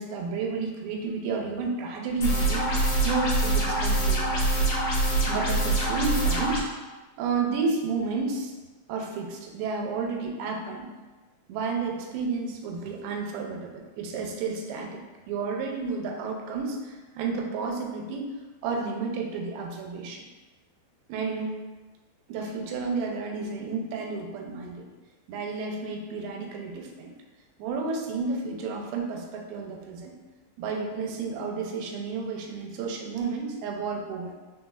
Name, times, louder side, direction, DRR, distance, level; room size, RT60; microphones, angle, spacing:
voice 1, 0.0-2.8 3.0-4.7 5.3-6.6 7.2-8.5 8.9-10.9 11.5-15.0 15.3-18.4 18.6-20.3 21.1-21.6 22.3-24.9 25.3-27.1 27.6-30.1 30.6-34.3, right 4 dB, 90° right, 1 dB, 2.5 m, -31 dB
sound 1, 2.2-6.6, right 2 dB, 90° left, 1.4 m, -24 dB
4.6 x 4.2 x 2.3 m, 1.2 s
omnidirectional pair, 4.3 m